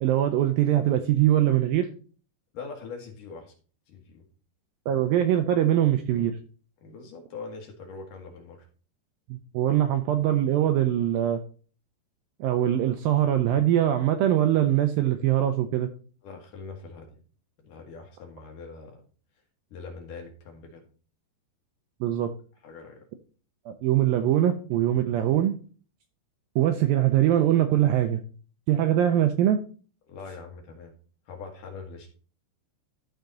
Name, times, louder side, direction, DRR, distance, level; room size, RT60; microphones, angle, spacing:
voice 1, 0.0-1.9 4.9-6.3 9.3-11.4 12.4-15.9 22.0-22.3 23.7-25.5 26.6-28.2 28.7-29.6, right 12 dB, 85° right, 7 dB, 2.1 m, -22 dB
voice 2, 2.5-3.5 3.9-4.2 6.8-8.7 16.2-17.2 17.6-19.0 19.7-20.8 22.6-23.1 30.1-30.9 31.3-32.1, left 4 dB, 60° left, 2 dB, 2.6 m, -42 dB
12.0 x 4.7 x 3.9 m, 0.39 s
omnidirectional pair, 4.7 m